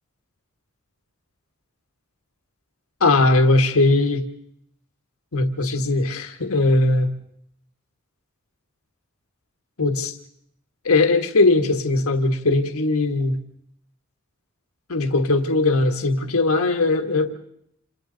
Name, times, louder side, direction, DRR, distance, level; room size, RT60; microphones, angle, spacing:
voice 1, 3.0-4.3 5.3-7.1 9.8-10.1 10.8-13.4 14.9-17.3, left 2 dB, 75° left, 5 dB, 1.4 m, -19 dB
28.0 x 27.5 x 3.9 m, 0.71 s
head